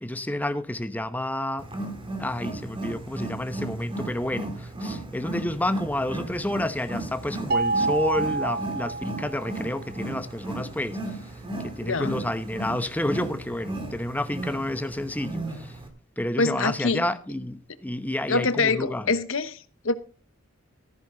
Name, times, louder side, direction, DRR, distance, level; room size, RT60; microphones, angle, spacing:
voice 1, 0.0-1.7 2.2-11.3 11.6-15.8 16.2-19.1, left 1 dB, 10° left, 0.9 m, -30 dB
Wild animals, 1.6-15.9, right 2 dB, 25° right, 2.4 m, -35 dB
sound 1, 7.5-9.7, right 3 dB, 45° right, 0.7 m, -27 dB
voice 2, 11.8-12.1 16.4-17.0 18.3-19.6 19.8-19.9, left 3 dB, 70° left, 1.0 m, -24 dB
14.0 x 10.5 x 3.9 m
head